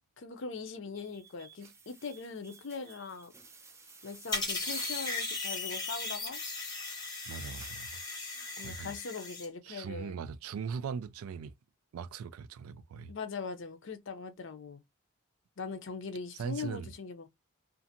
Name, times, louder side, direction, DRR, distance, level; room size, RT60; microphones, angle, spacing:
voice 1, 0.2-3.3 4.0-6.4 8.6-10.2 13.1-14.8 15.6-17.3, left 4 dB, 60° left, 0.5 m, -41 dB
sound 1, 0.9-8.7, right 4 dB, 10° right, 0.4 m, -51 dB
sound 2, 4.3-9.5, left 3 dB, 20° left, 0.7 m, -37 dB
voice 2, 7.3-7.9 8.6-9.0 9.6-11.6 11.9-13.1 16.3-16.9, right 6 dB, 85° right, 0.3 m, -39 dB
2.5 x 2.5 x 2.7 m
head